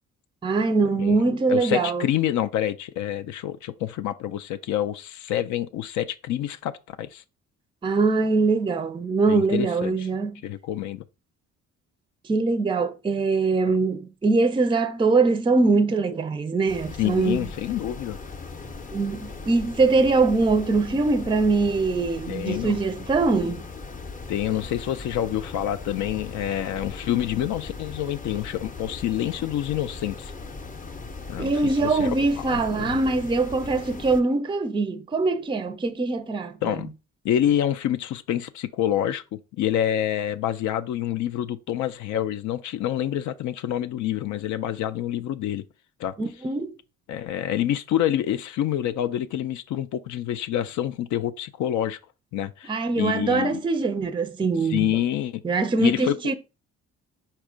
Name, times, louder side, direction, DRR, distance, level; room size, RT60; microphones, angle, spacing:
voice 1, 0.4-2.1 7.8-10.3 12.3-17.4 18.9-23.7 31.4-36.8 46.2-46.7 52.7-55.0 55.4-56.3, right 3 dB, 15° right, 0.4 m, -23 dB
voice 2, 1.5-7.2 9.3-10.1 10.4-11.0 13.7-13.8 17.0-18.2 22.3-22.8 24.3-30.3 31.3-33.0 36.6-36.9 37.2-45.6 46.0-46.2 47.1-52.0 52.3-53.6 54.7-55.4 55.8-56.1, left 11 dB, 75° left, 0.5 m, -27 dB
sound 1, 16.7-34.2, left 4 dB, 25° left, 0.6 m, -38 dB
4.4 x 2.4 x 4.8 m
cardioid pair, 90°, 30 cm